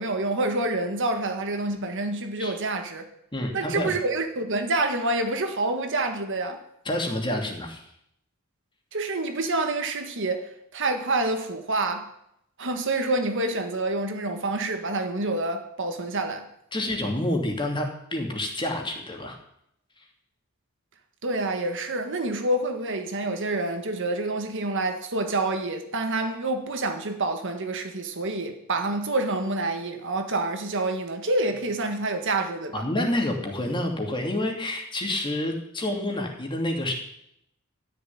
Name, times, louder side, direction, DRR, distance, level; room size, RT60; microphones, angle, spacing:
voice 1, 0.0-3.0 3.5-6.6 8.9-12.1 12.6-16.5 21.2-32.8, right 2 dB, 60° right, 1.7 m, -27 dB
voice 2, 3.3-3.9 6.8-7.8 16.7-19.4 32.7-36.9, left 1 dB, 25° left, 2.5 m, -28 dB
13.5 x 6.9 x 9.9 m
head